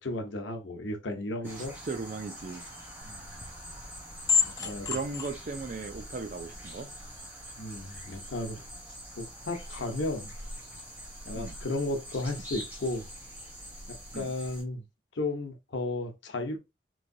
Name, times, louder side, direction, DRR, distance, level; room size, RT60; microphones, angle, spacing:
voice 1, 0.0-1.7 3.0-3.3 4.4-4.9 7.6-8.6 9.2-10.3 11.2-13.0 13.9-14.8 15.1-16.6, left 2 dB, 80° left, 0.7 m, -34 dB
sound 1, 1.4-14.6, equal, 10° right, 0.8 m, -45 dB
voice 2, 1.5-2.6 4.6-6.9 11.3-11.6 14.1-14.3, right 4 dB, 45° right, 0.4 m, -37 dB
sound 2, 3.0-7.3, left 5 dB, 20° left, 0.5 m, -33 dB
3.1 x 2.7 x 2.5 m
head